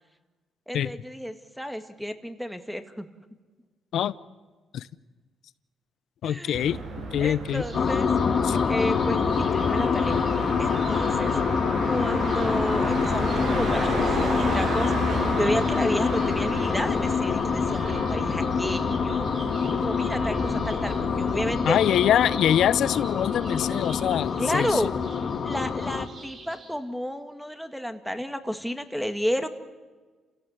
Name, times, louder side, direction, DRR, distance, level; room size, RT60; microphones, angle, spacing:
voice 1, 0.7-3.1 6.2-6.6 7.2-8.1 8.7-10.2 10.6-11.3 11.9-19.3 19.7-21.8 22.1-22.2 24.4-24.9 25.4-29.5, equal, ahead, 8 dB, 1.9 m, -31 dB
voice 2, 6.2-6.8 7.1-7.6 8.4-8.6 21.6-24.8, left 10 dB, 75° left, 17 dB, 0.7 m, -24 dB
Motor vehicle (road), 6.5-21.5, right 3 dB, 75° right, 7.5 m, -33 dB
sound 1, 7.5-26.8, right 3 dB, 50° right, 3.7 m, -44 dB
sound 2, 7.7-26.1, left 6 dB, 50° left, 1.8 m, -26 dB
29.0 x 16.5 x 8.3 m, 1.4 s
cardioid pair, 90°, 0 cm